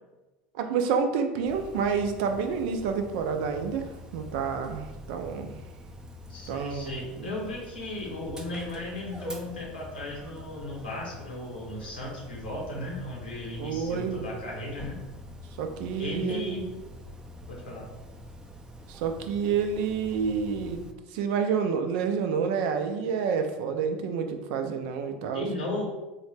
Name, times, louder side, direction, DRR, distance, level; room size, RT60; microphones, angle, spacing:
voice 1, 0.5-5.6 6.5-7.3 13.6-14.3 15.6-16.6 18.9-20.8 21.1-25.5, right 6 dB, 65° right, 6 dB, 0.4 m, -29 dB
Dog, 1.4-20.9, equal, 15° right, 0.5 m, -45 dB
voice 2, 6.3-15.0 16.0-16.7 17.5-17.9 25.3-25.8, left 2 dB, 90° left, -2 dB, 1.0 m, -35 dB
3.8 x 2.2 x 3.2 m, 1.1 s
hypercardioid pair, 80°, 5 cm